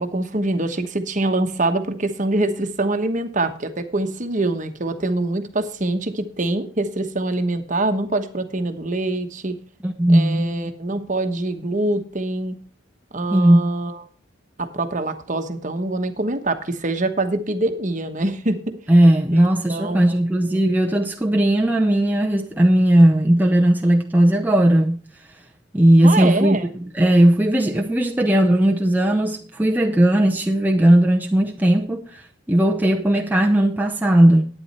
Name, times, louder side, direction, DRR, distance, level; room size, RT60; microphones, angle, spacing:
voice 1, 0.0-9.6 10.1-12.6 13.1-14.0 14.6-18.8 19.3-20.2 26.0-26.6, right 2 dB, 40° right, 1.1 m, -24 dB
voice 2, 9.8-10.5 13.3-13.7 18.9-25.0 25.7-32.2 32.5-34.5, right 1 dB, 10° right, 0.7 m, -17 dB
11.5 x 9.3 x 4.2 m
head